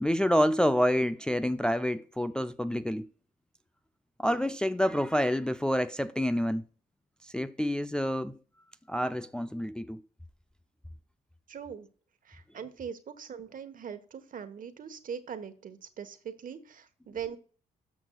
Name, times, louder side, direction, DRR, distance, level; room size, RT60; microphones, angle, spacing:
voice 1, 0.0-3.1 4.2-6.6 7.2-8.4 8.9-10.0, equal, 5° left, 0.4 m, -28 dB
voice 2, 11.5-11.9 12.2-17.4, right 7 dB, 55° right, 1.2 m, -41 dB
13.0 x 6.1 x 2.3 m
supercardioid pair, 65°, 17 cm